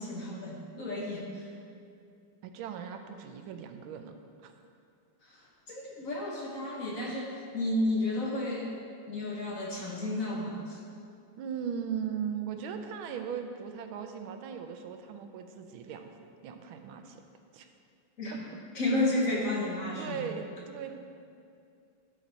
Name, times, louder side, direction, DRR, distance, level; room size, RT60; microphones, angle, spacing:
voice 1, 0.0-1.5 5.2-5.4 5.7-8.7 9.1-10.8 18.2-18.4 18.7-20.2, left 1 dB, 50° left, -3 dB, 1.2 m, -32 dB
voice 2, 2.4-4.1 4.4-4.5 9.8-9.9 11.4-16.1 16.4-17.2 17.5-17.7 18.3-18.6 20.0-21.0, right 7 dB, 85° right, 6 dB, 1.5 m, -38 dB
11.5 x 5.2 x 4.0 m, 2.4 s
omnidirectional pair, 2.2 m